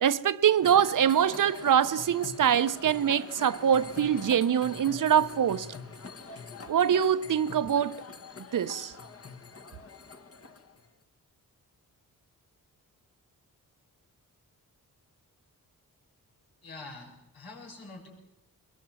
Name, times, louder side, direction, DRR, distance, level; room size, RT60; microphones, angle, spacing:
voice 1, 0.0-5.7 6.7-8.0 8.5-8.9, right 9 dB, 60° right, 0.8 m, -24 dB
sound 1, 0.6-10.9, left 4 dB, 40° left, 1.7 m, -44 dB
voice 2, 16.6-18.1, left 3 dB, 85° left, 7.1 m, -45 dB
23.0 x 21.5 x 7.7 m
wide cardioid pair, 105°, 35 cm